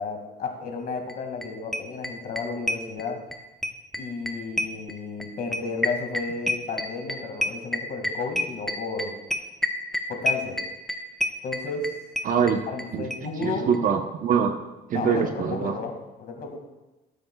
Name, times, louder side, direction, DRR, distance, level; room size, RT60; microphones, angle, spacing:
voice 1, 0.0-3.2 4.0-9.2 10.1-10.6 11.4-11.9 12.7-13.7 14.9-16.6, left 4 dB, 60° left, 3 dB, 2.1 m, -32 dB
sound 1, 1.1-1.2 1.4-1.5 1.7-3.4 3.6-12.9 13.1-13.2 13.4-13.5 13.7-13.8, left 1 dB, ahead, 0.9 m, -28 dB
voice 2, 12.2-12.6 12.9-14.6 14.9-15.8, right 7 dB, 55° right, 6 dB, 0.9 m, -24 dB
17.0 x 8.0 x 2.3 m, 1.1 s
cardioid pair, 110°, 17 cm